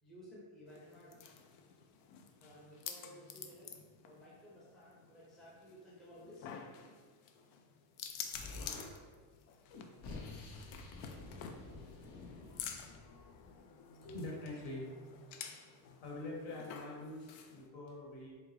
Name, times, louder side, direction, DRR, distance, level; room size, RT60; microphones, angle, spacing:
voice 1, 0.0-1.2 2.4-3.7 4.0-6.5, equal, ahead, -8 dB, 0.5 m, -56 dB
sound 1, 0.7-17.7, left 7 dB, 90° left, 0.6 m, -50 dB
Explosion, 8.3-8.9 9.7-13.6, left 3 dB, 45° left, 0.7 m, -49 dB
voice 2, 14.0-14.9 15.6-18.3, left 2 dB, 65° left, -2 dB, 1.4 m, -45 dB
3.9 x 3.5 x 3.1 m, 1.5 s
cardioid pair, 160°, 50 cm